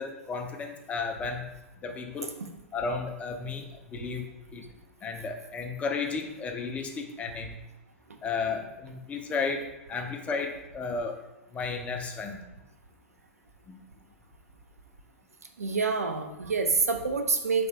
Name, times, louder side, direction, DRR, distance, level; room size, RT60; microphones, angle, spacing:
voice 1, 0.0-1.5 1.8-2.4 2.7-4.7 5.0-7.6 8.2-11.2 11.5-12.4 13.7-13.8, left 4 dB, 15° left, 4 dB, 0.4 m, -33 dB
voice 2, 15.6-17.7, right 4 dB, 80° right, 5 dB, 0.4 m, -27 dB
3.1 x 2.8 x 3.3 m, 0.94 s
figure-of-eight pair, 105°, 8 cm